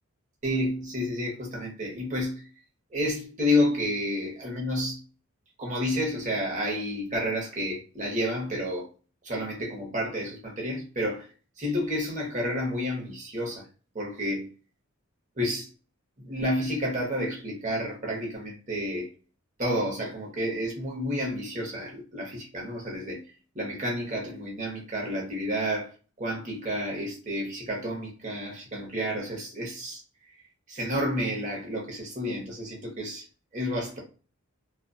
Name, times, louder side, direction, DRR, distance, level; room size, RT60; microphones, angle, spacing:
voice 1, 0.4-2.4 2.9-5.0 5.6-8.8 9.2-11.3 11.6-13.6 13.9-14.5 15.4-15.7 16.2-19.1 19.6-23.2 23.5-25.9 26.2-30.0 30.7-33.3 33.5-34.0, equal, 35° right, 0.8 m, -30 dB
2.5 x 2.2 x 2.2 m
head